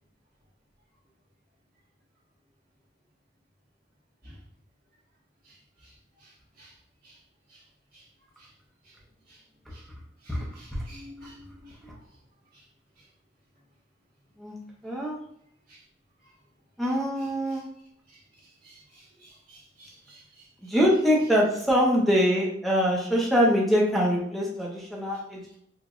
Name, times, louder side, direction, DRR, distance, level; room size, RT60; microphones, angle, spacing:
voice 1, 10.2-11.8 18.6-20.5, equal, 55° right, -9 dB, 1.4 m, -51 dB
voice 2, 14.8-15.2 16.8-17.6 20.6-25.5, equal, ahead, -3 dB, 0.8 m, -24 dB
4.9 x 2.5 x 2.5 m, 0.73 s
head